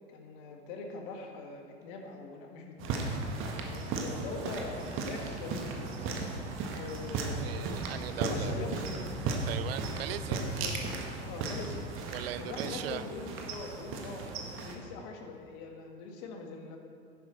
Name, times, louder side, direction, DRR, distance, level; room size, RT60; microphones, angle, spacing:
voice 1, 0.1-3.1 3.6-6.3 6.7-7.8 8.2-9.2 10.1-11.9 12.4-16.8, left 4 dB, 50° left, 2 dB, 1.6 m, -43 dB
sound 1, 2.8-14.7, right 3 dB, 35° right, 1.5 m, -36 dB
voice 2, 7.4-8.5 9.5-10.4 12.1-13.0, right 12 dB, 60° right, 14 dB, 0.5 m, -39 dB
11.0 x 10.0 x 4.0 m, 2.4 s
figure-of-eight pair, 85°, 34 cm